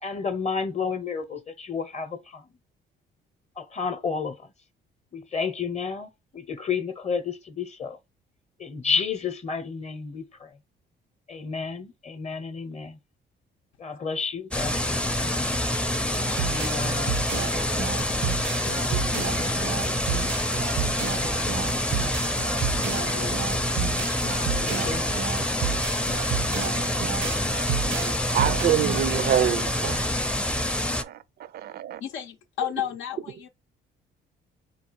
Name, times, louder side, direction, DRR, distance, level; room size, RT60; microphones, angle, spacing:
voice 1, 0.0-2.5 3.6-4.5 5.1-8.0 8.6-10.5 11.3-13.0 13.8-15.7 16.3-17.1 24.5-25.0, left 5 dB, 35° left, 0.7 m, -31 dB
sound 1, 14.5-31.0, left 1 dB, 5° left, 0.5 m, -26 dB
sound 2, 16.1-29.1, right 7 dB, 90° right, 0.8 m, -32 dB
voice 2, 18.6-21.1 23.1-23.8 32.0-33.5, left 10 dB, 85° left, 0.6 m, -36 dB
voice 3, 28.3-30.0 31.0-31.2 31.5-32.0, right 11 dB, 55° right, 0.4 m, -25 dB
4.3 x 2.3 x 4.5 m
cardioid pair, 90°, 20 cm